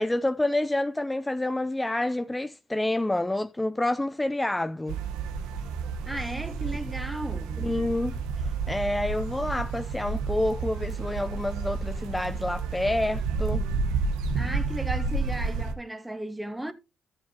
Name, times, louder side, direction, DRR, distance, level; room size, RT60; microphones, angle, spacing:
voice 1, 0.0-5.0 7.6-8.2 8.7-13.6, left 1 dB, 15° left, 0.5 m, -28 dB
sound 1, 4.9-15.7, right 4 dB, 90° right, 1.1 m, -30 dB
voice 2, 6.1-7.7 14.3-16.7, right 1 dB, 10° right, 1.5 m, -35 dB
13.0 x 7.2 x 2.8 m
supercardioid pair, 60°, 0 cm